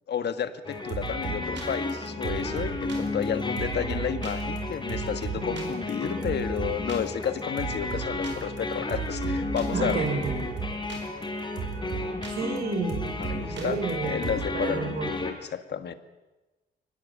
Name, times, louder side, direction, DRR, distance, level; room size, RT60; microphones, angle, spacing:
voice 1, 0.1-10.1 13.2-15.9, left 8 dB, 65° left, 10 dB, 1.8 m, -32 dB
sound 1, 0.6-15.3, left 2 dB, 25° left, 4.3 m, -33 dB
sound 2, 0.6-14.5, right 6 dB, 80° right, 4.7 m, -36 dB
voice 2, 9.7-10.4 12.3-14.2 14.5-15.1, right 4 dB, 55° right, 4 dB, 5.0 m, -31 dB
23.5 x 19.5 x 8.6 m, 1.1 s
cardioid pair, 100°, 19 cm